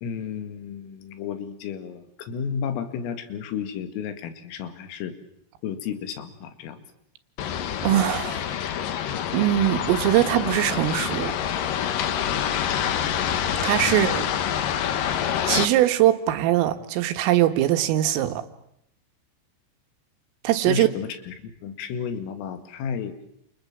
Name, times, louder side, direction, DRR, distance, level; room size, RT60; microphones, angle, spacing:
voice 1, 0.0-5.2 5.6-6.8 13.9-14.4 20.7-23.2, left 7 dB, 85° left, 9 dB, 4.6 m, -32 dB
sound 1, 7.4-15.7, left 9 dB, 70° left, 2.1 m, -26 dB
voice 2, 7.8-8.5 9.3-11.3 13.6-14.2 15.5-18.4 20.4-20.9, right 13 dB, 85° right, 8 dB, 4.1 m, -21 dB
28.5 x 28.5 x 7.3 m, 0.76 s
omnidirectional pair, 5.8 m